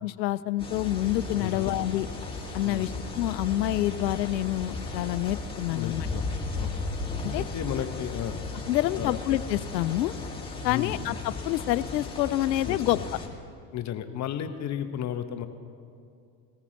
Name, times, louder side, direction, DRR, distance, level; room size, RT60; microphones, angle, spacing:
voice 1, 0.0-2.1 2.5-6.1 7.3-7.4 8.7-10.1 10.6-13.0, left 14 dB, 80° left, 17 dB, 0.6 m, -27 dB
sound 1, 0.6-13.3, left 3 dB, 10° left, 2.1 m, -35 dB
voice 2, 1.3-1.6 2.6-2.9 5.7-6.3 6.6-6.7 7.3-8.4 8.9-9.2 10.6-11.0 12.6-13.1 13.7-15.5, left 10 dB, 35° left, 9 dB, 0.8 m, -33 dB
19.5 x 14.5 x 3.1 m, 2.4 s
hypercardioid pair, 85°, 49 cm